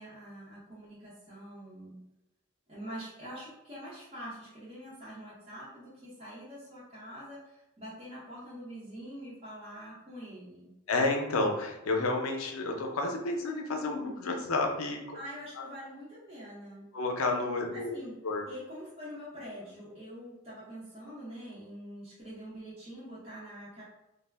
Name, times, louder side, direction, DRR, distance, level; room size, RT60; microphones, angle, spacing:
voice 1, 0.0-2.0 2.7-10.7 15.1-16.9 17.7-18.2 18.5-23.8, equal, 30° right, -9 dB, 0.7 m, -45 dB
voice 2, 10.9-15.0 16.9-17.9 18.2-18.4, left 2 dB, 90° left, 2 dB, 0.5 m, -30 dB
2.3 x 2.0 x 3.3 m, 0.92 s
head